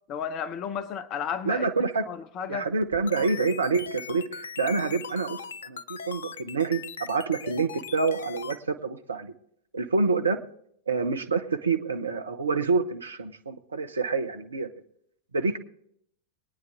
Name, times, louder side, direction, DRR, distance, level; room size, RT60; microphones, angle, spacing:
voice 1, 0.1-1.7 2.1-2.7, left 7 dB, 35° left, 0.8 m, -33 dB
voice 2, 1.4-2.0 2.5-9.3 9.7-10.4 10.9-14.7 15.3-15.6, right 4 dB, 75° right, 0.9 m, -27 dB
sound 1, 2.8-8.6, left 7 dB, 65° left, 0.6 m, -39 dB
22.5 x 9.6 x 3.5 m
figure-of-eight pair, 90°, 0 cm